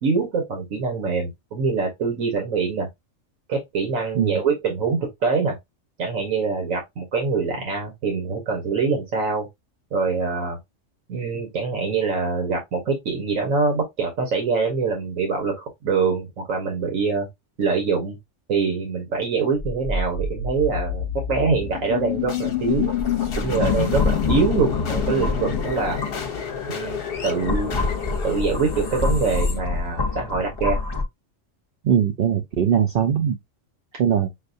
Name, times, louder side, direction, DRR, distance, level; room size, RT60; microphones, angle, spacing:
voice 1, 0.0-2.9 3.5-5.6 6.0-9.5 9.9-10.6 11.1-17.3 17.6-18.2 18.5-22.9 23.4-26.0 26.7-27.8 28.2-30.8, right 4 dB, 90° right, 1.5 m, -24 dB
sound 1, 19.6-30.6, left 7 dB, 55° left, 0.9 m, -28 dB
sound 2, 22.7-26.6 27.1-31.0, left 3 dB, 30° left, 0.5 m, -27 dB
voice 2, 31.8-33.4 34.0-34.3, right 8 dB, 60° right, 0.6 m, -20 dB
6.4 x 2.2 x 2.5 m
omnidirectional pair, 1.3 m